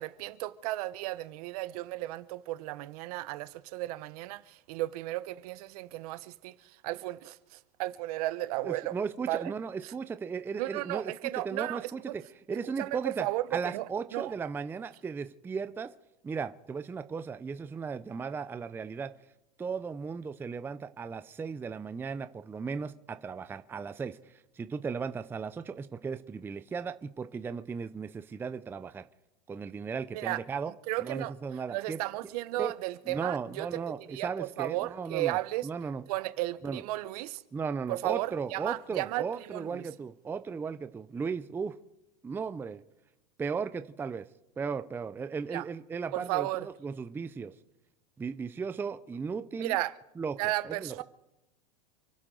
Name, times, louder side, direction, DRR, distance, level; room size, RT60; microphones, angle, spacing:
voice 1, 0.0-8.9 9.3-9.5 9.8-9.9 10.6-12.2 12.8-13.9 14.1-14.3 30.1-30.4 30.9-31.3 31.7-35.7 36.1-37.4 37.9-39.9 45.5-45.6 46.1-46.7 49.6-49.9 50.4-51.0, right 17 dB, 65° right, 0.9 m, -34 dB
voice 2, 8.6-11.1 11.4-12.2 12.5-13.3 13.5-15.9 16.2-19.1 19.6-24.2 24.6-29.1 29.5-30.7 31.0-32.0 32.6-32.7 33.1-36.0 36.6-36.8 37.5-41.7 42.2-42.8 43.4-44.2 44.6-47.5 48.2-49.8 50.2-50.3 50.6-51.0, right 5 dB, 10° right, 0.5 m, -36 dB
28.5 x 11.5 x 3.8 m
supercardioid pair, 135°, 21 cm